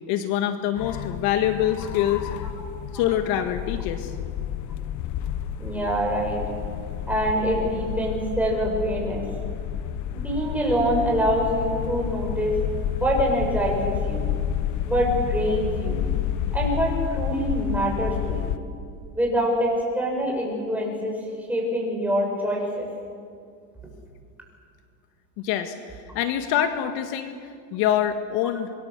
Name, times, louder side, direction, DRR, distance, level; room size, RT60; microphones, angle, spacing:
voice 1, 0.1-2.3 2.9-4.1 25.4-28.7, left 10 dB, 60° left, 7 dB, 1.9 m, -25 dB
sound 1, 0.8-18.6, left 10 dB, 45° left, 1.3 m, -30 dB
voice 2, 5.6-6.4 7.1-9.2 10.1-12.6 12.9-14.2 14.8-16.0 16.5-18.4 19.1-21.2 21.5-22.9, equal, 5° right, -1 dB, 7.5 m, -25 dB
27.0 x 23.0 x 7.5 m, 2.3 s
supercardioid pair, 135°, 42 cm